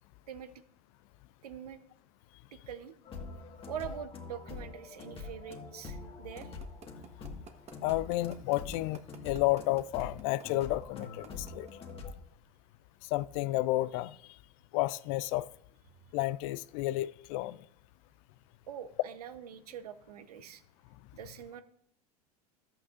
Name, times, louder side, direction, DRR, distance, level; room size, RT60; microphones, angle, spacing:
voice 1, 1.4-1.8 2.5-2.9 3.7-6.5 18.7-20.6 21.1-21.6, right 9 dB, 80° right, 0.9 m, -44 dB
sound 1, 3.1-12.1, left 4 dB, 30° left, 1.7 m, -45 dB
sound 2, 6.4-12.1, right 6 dB, 35° right, 1.3 m, -50 dB
voice 2, 7.8-11.7 13.0-14.4 14.7-15.5 16.1-17.6, left 17 dB, 60° left, 0.4 m, -31 dB
13.5 x 8.5 x 2.5 m
hypercardioid pair, 85°, 19 cm